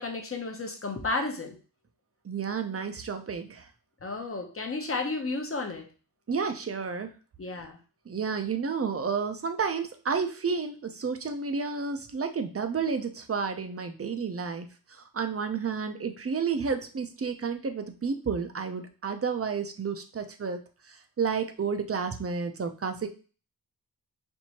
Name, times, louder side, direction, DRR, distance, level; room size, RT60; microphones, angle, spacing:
voice 1, 0.0-1.6 4.0-5.9 7.4-7.8, left 3 dB, 35° left, 4 dB, 0.7 m, -32 dB
voice 2, 2.2-3.6 6.3-7.1 8.1-14.7 15.1-20.6 21.2-23.1, right 5 dB, 40° right, 7 dB, 0.5 m, -31 dB
4.4 x 2.6 x 2.9 m, 0.35 s
wide cardioid pair, 100°, 38 cm